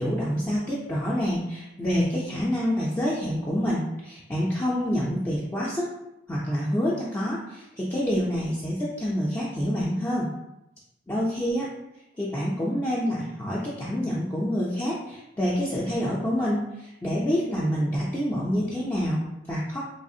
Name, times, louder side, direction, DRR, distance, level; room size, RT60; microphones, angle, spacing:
voice 1, 0.0-5.9 6.3-10.3 11.1-11.6 12.2-19.8, equal, 15° left, -7 dB, 0.4 m, -27 dB
3.3 x 2.4 x 2.7 m, 0.89 s
head